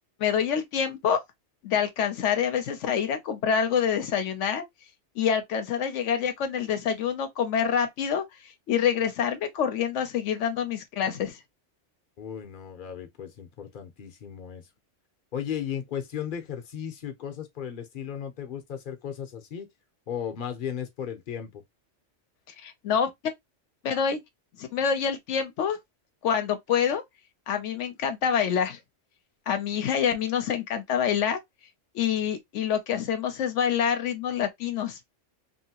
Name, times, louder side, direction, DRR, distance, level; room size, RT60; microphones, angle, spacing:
voice 1, 0.2-1.2 1.6-4.6 5.2-11.4 22.6-23.1 23.8-24.2 24.6-25.8 26.2-27.0 27.5-28.8 29.5-31.4 31.9-35.0, left 8 dB, 80° left, 1.0 m, -26 dB
voice 2, 12.2-14.6 15.3-19.7 20.1-21.6, left 8 dB, 50° left, 0.9 m, -35 dB
2.9 x 2.8 x 2.8 m
omnidirectional pair, 1.2 m